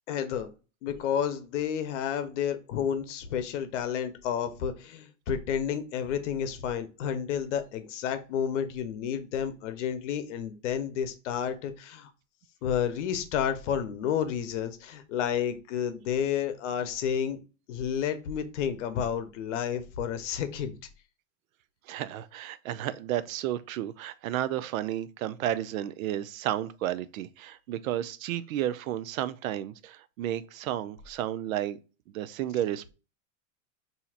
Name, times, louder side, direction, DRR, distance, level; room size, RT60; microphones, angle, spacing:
voice 1, 0.1-0.5 0.8-12.1 12.6-17.4 17.7-20.7, left 8 dB, 60° left, 0.8 m, -31 dB
voice 2, 21.9-31.8 32.1-32.9, right 12 dB, 75° right, 0.5 m, -32 dB
5.6 x 2.8 x 2.4 m
supercardioid pair, 165°, 41 cm